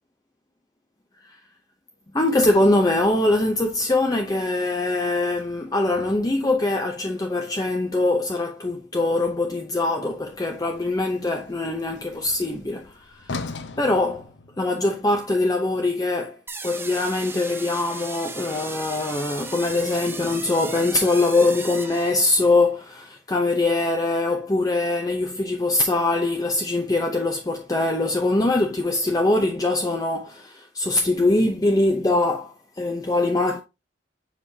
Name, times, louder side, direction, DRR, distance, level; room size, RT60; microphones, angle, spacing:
voice 1, 2.1-14.3 14.6-33.6, left 2 dB, 20° left, 0.7 m, -23 dB
Sliding door, 2.3-6.5 10.0-15.0, left 3 dB, 80° left, 0.7 m, -42 dB
sound 1, 16.5-22.6, right 3 dB, 15° right, 0.8 m, -36 dB
7.4 x 4.9 x 2.8 m
head